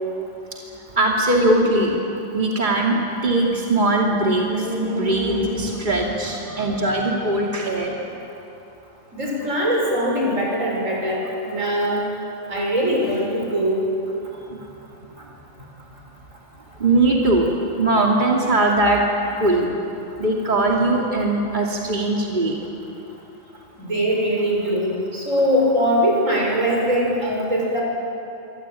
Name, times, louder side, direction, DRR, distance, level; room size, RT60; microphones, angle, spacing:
voice 1, 0.9-2.0 2.3-8.0 14.5-14.6 16.8-17.5 17.8-19.0 19.4-19.7 20.2-22.6, right 2 dB, 40° right, -1 dB, 2.8 m, -20 dB
voice 2, 9.1-12.0 12.5-13.9 23.8-27.8, equal, 85° right, -2 dB, 7.0 m, -21 dB
26.0 x 25.0 x 9.1 m, 2.9 s
omnidirectional pair, 1.3 m